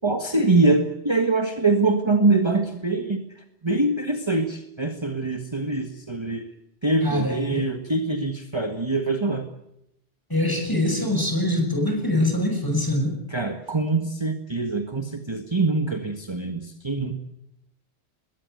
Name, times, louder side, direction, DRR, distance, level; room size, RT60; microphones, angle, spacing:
voice 1, 0.0-3.2 3.6-6.4 6.8-9.4 13.3-17.1, right 3 dB, 25° right, 5 dB, 1.7 m, -24 dB
voice 2, 7.0-7.7 10.3-13.2, left 1 dB, 20° left, 4 dB, 6.7 m, -24 dB
21.5 x 19.0 x 9.3 m, 0.81 s
omnidirectional pair, 1.1 m